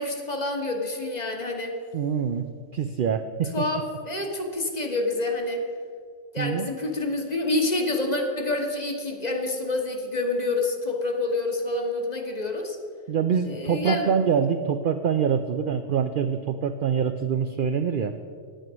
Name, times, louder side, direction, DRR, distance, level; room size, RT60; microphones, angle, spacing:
voice 1, 0.0-1.8 3.5-5.6 6.3-12.8 13.5-14.1, left 2 dB, 35° left, 3 dB, 1.1 m, -27 dB
voice 2, 1.9-2.5 2.7-3.7 6.4-6.7 13.1-18.1, right 7 dB, 65° right, 8 dB, 0.5 m, -25 dB
9.1 x 9.0 x 6.1 m, 2.1 s
omnidirectional pair, 1.4 m